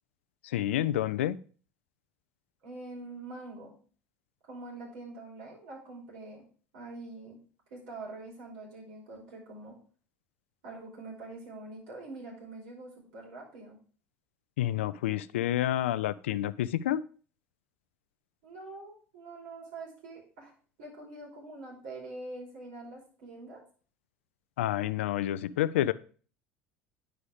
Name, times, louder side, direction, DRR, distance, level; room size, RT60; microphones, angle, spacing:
voice 1, 0.4-1.4 14.6-17.0 24.6-25.9, left 13 dB, 80° left, 16 dB, 0.4 m, -29 dB
voice 2, 2.6-3.7 4.4-6.4 6.7-7.4 7.7-9.7 10.6-13.8 18.4-20.5 20.8-23.6, right 2 dB, 70° right, -2 dB, 5.0 m, -44 dB
10.0 x 4.9 x 4.9 m, 0.42 s
hypercardioid pair, 75°, 7 cm